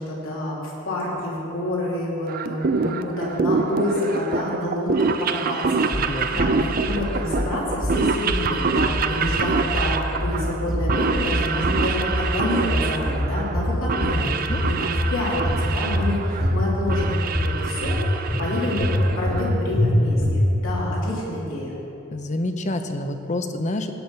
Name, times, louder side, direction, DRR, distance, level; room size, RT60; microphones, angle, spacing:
voice 1, 0.0-18.0 18.4-21.8, left 1 dB, 75° left, -5 dB, 3.2 m, -28 dB
sound 1, 2.3-19.7, right 4 dB, 45° right, 0.5 m, -26 dB
sound 2, 5.9-6.5 6.9-7.5 7.8-8.5 8.8-9.5 9.7-10.4 10.7-11.4 11.6-12.3 12.6-13.3 13.5-14.2 14.5-15.1 15.4-16.1 16.4-17.0 17.3-18.0 18.3-18.4 18.8-19.4 19.7-19.9 20.2-20.7, equal, 15° left, 1.3 m, -24 dB
voice 2, 6.0-6.7 14.1-14.6 22.1-23.9, left 1 dB, 35° left, 7 dB, 0.7 m, -28 dB
17.5 x 6.3 x 5.6 m, 2.9 s
head